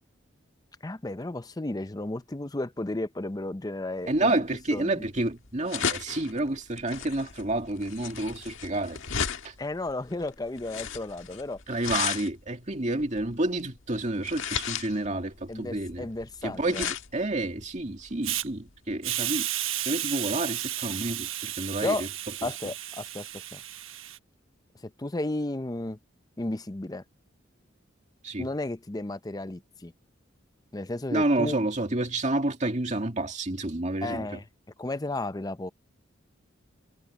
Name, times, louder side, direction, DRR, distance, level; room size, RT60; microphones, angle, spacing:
voice 1, 0.8-4.3 4.7-4.9 9.6-11.6 15.5-16.9 21.8-22.1 22.4-23.6 24.8-26.0 26.4-27.0 28.4-29.9 30.7-31.6 34.0-34.4 34.8-35.7, left 2 dB, 20° left, 0.6 m, -33 dB
sound 1, 4.1-18.9, left 7 dB, 75° left, 1.6 m, -35 dB
voice 2, 4.1-9.0 9.4-9.6 11.7-16.1 16.4-19.5 19.9-22.1 28.2-28.5 31.1-34.4, right 2 dB, 35° right, 2.2 m, -29 dB
Hiss, 18.2-18.4 19.0-24.2, right 13 dB, 85° right, 1.2 m, -33 dB
head